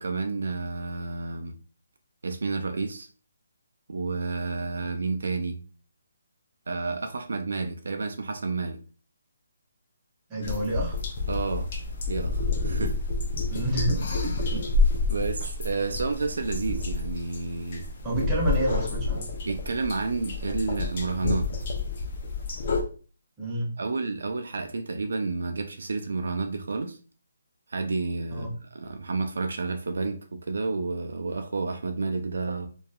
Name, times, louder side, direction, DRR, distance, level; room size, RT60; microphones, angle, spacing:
voice 1, 0.0-1.5 2.2-3.1 3.9-5.6 6.7-8.8 11.3-11.7 12.1-13.0 15.1-17.9 19.4-21.5 23.8-27.0 27.7-32.7, right 3 dB, 75° right, 0.3 m, -30 dB
voice 2, 10.3-11.0 13.5-14.6 18.0-19.3 23.4-23.8 28.3-28.6, right 1 dB, 15° right, 0.7 m, -29 dB
sound 1, 10.4-22.8, left 3 dB, 45° left, 0.5 m, -29 dB
2.7 x 2.3 x 2.3 m
hypercardioid pair, 160°, 0 cm